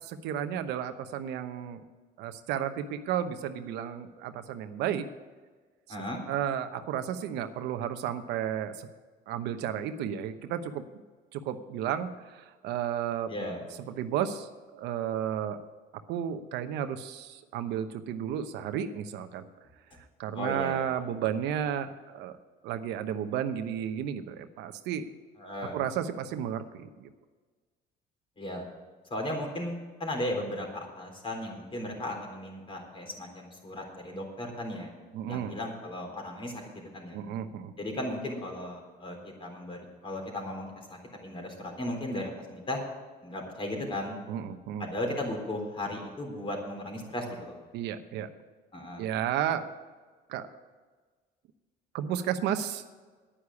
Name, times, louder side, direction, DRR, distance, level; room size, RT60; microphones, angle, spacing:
voice 1, 0.0-1.8 2.2-5.1 6.3-8.9 9.3-10.8 11.3-13.3 13.9-15.6 16.1-19.4 20.2-22.3 22.6-25.1 25.7-27.1 35.1-35.5 37.1-37.7 44.3-44.9 47.7-48.3 49.0-49.7 50.3-50.5 51.9-52.8, right 9 dB, 85° right, 9 dB, 0.9 m, -33 dB
voice 2, 5.9-6.2 13.3-13.6 20.3-20.8 25.4-25.8 28.4-28.7 29.1-34.9 35.3-37.2 37.8-42.8 43.2-44.2 44.8-47.5 48.7-49.1, left 1 dB, 30° left, 2 dB, 3.8 m, -36 dB
10.0 x 9.8 x 7.1 m, 1.4 s
cardioid pair, 110°, 17 cm